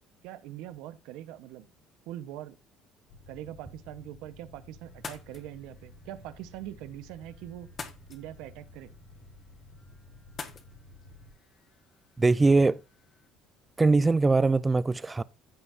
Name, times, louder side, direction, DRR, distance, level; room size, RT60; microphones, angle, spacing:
voice 1, 0.2-1.7 2.1-2.6 3.3-7.7 8.1-8.9, right 13 dB, 80° right, 1.1 m, -42 dB
sound 1, 3.1-11.3, left 1 dB, 70° left, 3.0 m, -53 dB
sound 2, 4.9-13.3, left 5 dB, 35° left, 1.6 m, -49 dB
voice 2, 12.2-12.8 13.8-15.2, right 3 dB, 15° right, 0.4 m, -22 dB
15.0 x 5.5 x 2.7 m
cardioid pair, 115°, 0 cm